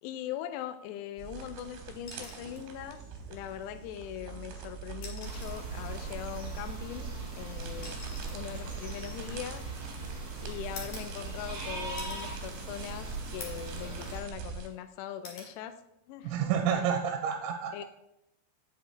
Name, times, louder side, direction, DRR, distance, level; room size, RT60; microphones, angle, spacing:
voice 1, 0.0-3.0 3.3-8.0 8.3-9.6 10.4-15.8 16.1-16.3 17.7-17.8, left 10 dB, 85° left, 10 dB, 2.5 m, -41 dB
sound 1, 1.2-14.7, right 6 dB, 75° right, 3.0 m, -45 dB
sound 2, 2.1-2.7 4.1-4.3 4.9-5.7 6.9-9.9 10.8-11.6 12.0-12.4 12.8-12.9 13.4-13.8 14.2-14.8 15.2-15.6 17.0-17.3, left 3 dB, 50° left, 2.7 m, -47 dB
sound 3, 5.2-14.2, right 3 dB, 35° right, 2.5 m, -39 dB
voice 2, 16.2-17.8, right 8 dB, 90° right, 5 dB, 3.0 m, -29 dB
8.2 x 8.0 x 3.2 m, 0.84 s
omnidirectional pair, 5.4 m